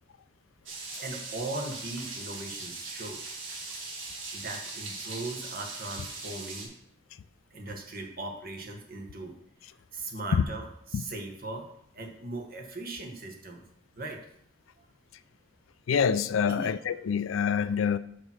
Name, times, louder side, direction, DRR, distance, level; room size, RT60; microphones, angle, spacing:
sound 1, 0.7-6.7, right 3 dB, 80° right, 1.6 m, -40 dB
voice 1, 0.8-3.2 4.3-6.7 7.5-9.3 9.9-11.7 11.9-13.6 14.0-14.2 16.5-16.7, right 2 dB, 50° right, 1.2 m, -39 dB
voice 2, 15.9-18.0, left 7 dB, 85° left, 0.4 m, -26 dB
5.9 x 5.0 x 5.5 m
head